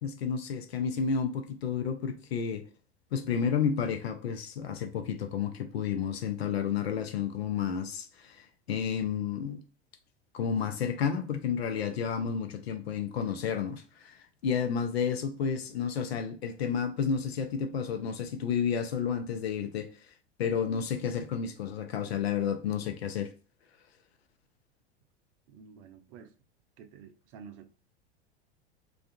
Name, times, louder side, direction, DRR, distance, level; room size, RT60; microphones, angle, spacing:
voice 1, 0.0-2.6 3.1-8.4 8.7-9.6 10.3-14.2 14.4-19.9 20.4-23.3, left 7 dB, 75° left, 0.6 m, -31 dB
voice 2, 25.5-26.3 26.8-27.7, right 6 dB, 55° right, 0.5 m, -50 dB
2.4 x 2.3 x 2.6 m
hypercardioid pair, 90°, 32 cm